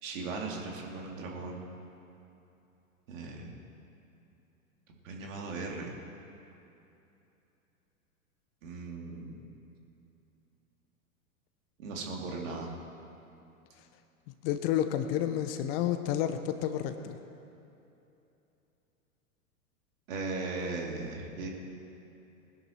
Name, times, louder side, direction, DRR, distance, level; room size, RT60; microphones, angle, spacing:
voice 1, 0.0-1.7 3.1-3.5 5.0-5.9 8.6-9.4 11.8-12.7 20.1-21.5, right 3 dB, 60° right, 0 dB, 2.7 m, -38 dB
voice 2, 14.4-17.2, left 10 dB, 40° left, 8 dB, 1.0 m, -30 dB
20.5 x 11.5 x 4.5 m, 2.9 s
hypercardioid pair, 105°, 43 cm